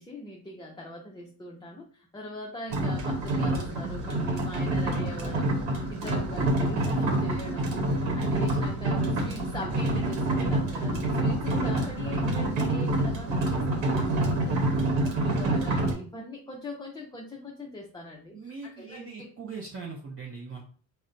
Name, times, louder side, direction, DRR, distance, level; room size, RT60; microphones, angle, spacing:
voice 1, 0.0-18.4 18.7-19.3, left 1 dB, 10° left, -3 dB, 0.4 m, -41 dB
sound 1, 2.7-15.9, right 1 dB, 80° right, 1.0 m, -27 dB
voice 2, 18.3-20.6, right 4 dB, 30° right, -2 dB, 0.6 m, -40 dB
4.2 x 2.1 x 2.5 m, 0.43 s
cardioid pair, 100°, 44 cm